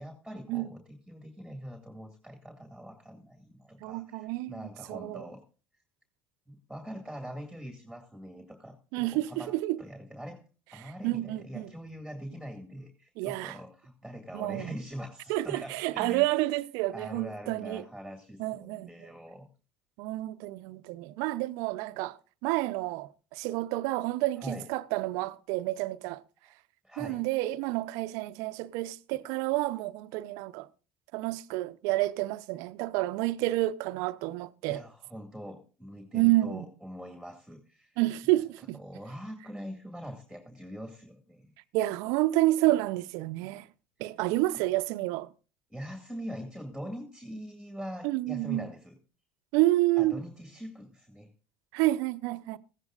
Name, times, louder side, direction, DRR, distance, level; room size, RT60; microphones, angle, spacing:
voice 1, 0.0-5.4 6.5-10.4 10.7-16.2 16.9-19.5 24.4-24.7 26.8-27.2 34.7-38.0 38.7-41.5 45.7-49.0 50.0-51.3, equal, ahead, 2.2 m, -43 dB
voice 2, 3.8-5.3 8.9-9.8 11.0-11.7 13.2-13.6 14.3-14.7 15.3-17.8 18.4-18.9 20.0-26.2 27.0-30.7 31.1-34.8 36.1-36.7 38.0-38.8 41.7-43.7 44.0-45.3 48.0-48.7 49.5-50.2 51.7-52.6, right 17 dB, 65° right, 0.7 m, -29 dB
17.5 x 15.0 x 2.5 m
hypercardioid pair, 70°, 6 cm